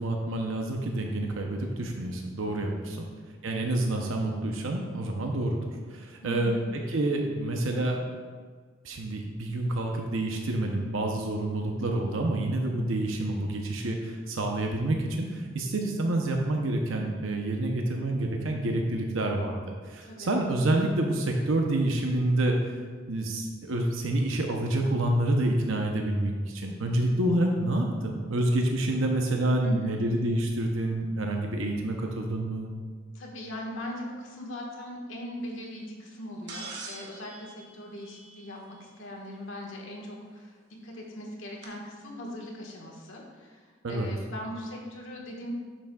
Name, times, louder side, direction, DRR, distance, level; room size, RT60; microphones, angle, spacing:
voice 1, 0.0-3.1 3.4-5.6 5.9-6.6 6.9-8.1 8.8-19.6 19.9-22.5 23.1-32.7 43.8-44.1, right 1 dB, 90° right, 2 dB, 0.7 m, -28 dB
voice 2, 6.2-6.7 20.0-20.4 29.6-30.1 33.1-40.6 40.8-45.5, left 1 dB, 75° left, -1 dB, 1.5 m, -39 dB
sound 1, 36.5-38.8 40.4-40.5 41.6-41.7, right 4 dB, 60° right, 1.2 m, -43 dB
11.0 x 6.0 x 2.3 m, 1.5 s
head